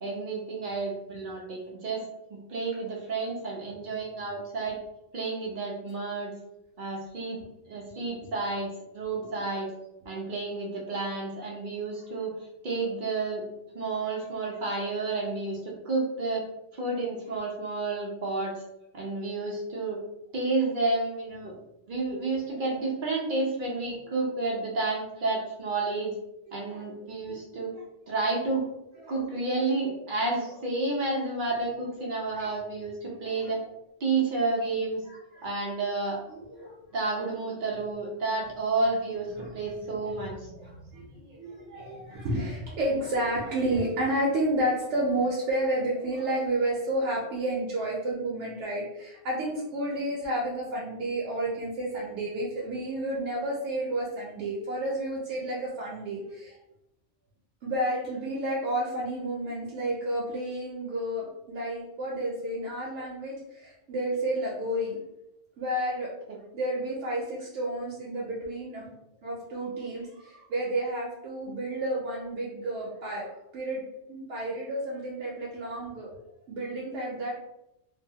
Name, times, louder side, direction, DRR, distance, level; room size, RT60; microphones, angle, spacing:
voice 1, 0.0-4.8 5.1-6.3 6.8-7.4 7.7-9.7 10.0-12.3 12.6-13.4 13.7-16.5 16.7-18.5 18.9-20.0 20.3-21.5 21.9-26.1 26.5-27.7 28.1-28.6 29.1-33.6 34.0-35.0 35.4-36.2 36.9-39.3 39.5-40.5, right 3 dB, 55° right, -2 dB, 0.7 m, -30 dB
voice 2, 26.5-26.9 27.3-27.8 29.0-29.3 31.1-31.2 32.3-32.6 35.1-35.5 36.3-36.8 39.4-39.7 40.1-56.6 57.6-65.0 65.6-66.1 66.5-68.9 69.2-73.8 74.1-76.1 76.5-77.3, right 1 dB, 85° right, -5 dB, 0.9 m, -31 dB
3.0 x 2.0 x 2.7 m, 0.86 s
omnidirectional pair, 1.2 m